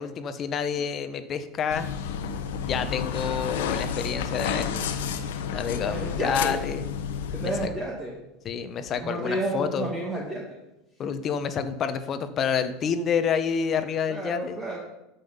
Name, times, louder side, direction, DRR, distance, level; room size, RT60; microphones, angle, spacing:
voice 1, 0.0-1.9 2.6-5.1 5.5-6.8 7.4-7.7 8.4-9.9 11.0-14.6, left 7 dB, 35° left, 10 dB, 0.9 m, -28 dB
sound 1, 1.7-7.7, left 7 dB, 85° left, 1.0 m, -30 dB
voice 2, 5.7-6.6 7.3-8.2 8.9-10.6 14.1-14.8, right 1 dB, 15° right, -3 dB, 1.9 m, -31 dB
13.5 x 5.6 x 5.5 m, 0.94 s
supercardioid pair, 130°, 0 cm